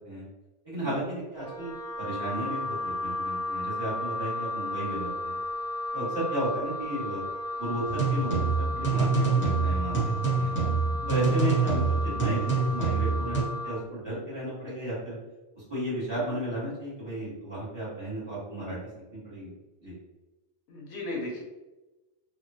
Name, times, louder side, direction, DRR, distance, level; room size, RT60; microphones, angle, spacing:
voice 1, 0.6-5.4 5.9-7.2 7.6-10.5 11.1-15.2 15.5-18.8 19.1-19.5 19.8-19.9, right 1 dB, 20° right, -9 dB, 1.5 m, -34 dB
Wind instrument woodwind instrument, 1.4-13.8, left 2 dB, 65° right, 1.0 m, -34 dB
sound 1, 7.8-13.4, right 4 dB, 10° left, 0.7 m, -26 dB
voice 2, 20.7-21.4, left 1 dB, 70° left, -1 dB, 0.9 m, -37 dB
2.8 x 2.3 x 2.7 m, 1.1 s
omnidirectional pair, 1.2 m